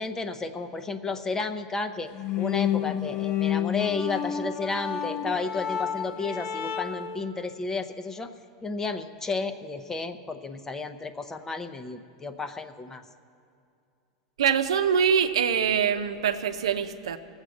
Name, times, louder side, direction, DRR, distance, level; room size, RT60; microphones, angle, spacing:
voice 1, 0.0-2.1 2.4-8.3 8.6-13.0, left 4 dB, 15° left, 9 dB, 0.8 m, -32 dB
sound 1, 2.1-7.2, left 9 dB, 50° left, 0.9 m, -30 dB
voice 2, 14.4-17.2, right 7 dB, 85° right, 7 dB, 0.7 m, -24 dB
18.5 x 8.0 x 6.4 m, 2.5 s
hypercardioid pair, 110°, 3 cm